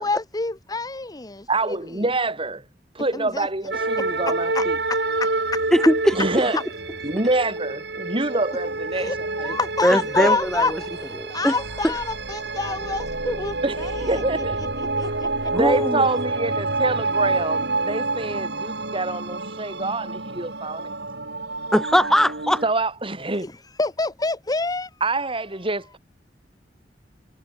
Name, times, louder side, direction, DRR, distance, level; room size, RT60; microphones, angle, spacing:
voice 1, 0.0-2.0 3.1-3.5 4.5-5.6 6.5-6.6 8.9-14.2 14.6-15.5 23.4-23.5 23.8-24.9, left 3 dB, 20° left, 1.1 m, -28 dB
voice 2, 1.5-2.6 3.0-4.8 6.1-6.6 7.0-9.6 9.9-10.4 13.6-14.6 15.5-20.9 22.6-23.5 25.0-26.0, right 2 dB, 30° right, 7.1 m, -26 dB
sound 1, 3.7-22.7, right 3 dB, 65° right, 5.7 m, -28 dB
voice 3, 5.7-6.1 9.8-10.6 11.2-11.5 15.5-16.0 21.7-22.6, equal, 5° left, 0.7 m, -20 dB
head